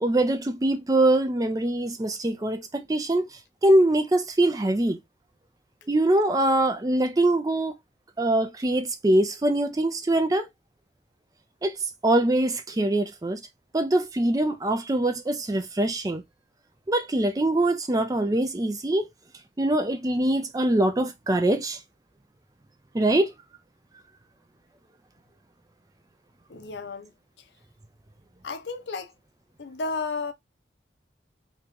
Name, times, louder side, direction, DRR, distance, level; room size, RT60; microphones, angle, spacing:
voice 1, 0.0-3.3 3.6-5.0 5.9-7.7 8.2-10.5 11.6-11.7 12.0-13.4 13.7-16.2 16.9-19.1 19.6-21.8 22.9-23.3, right 1 dB, 20° right, 0.4 m, -23 dB
voice 2, 26.5-27.1 28.4-29.1 29.6-30.3, left 4 dB, 75° left, 0.6 m, -32 dB
3.0 x 2.8 x 3.4 m
head